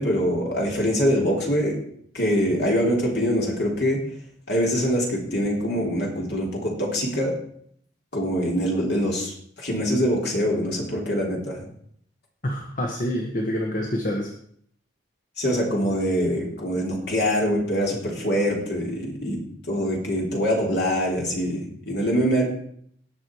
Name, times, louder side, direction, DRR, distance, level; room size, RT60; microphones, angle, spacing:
voice 1, 0.0-1.8 2.1-4.0 4.5-7.3 8.1-11.7 15.4-19.4 19.7-22.5, equal, 60° left, -1 dB, 3.4 m, -24 dB
voice 2, 12.4-14.3, equal, 40° left, 2 dB, 1.2 m, -27 dB
18.5 x 6.3 x 4.7 m, 0.65 s
head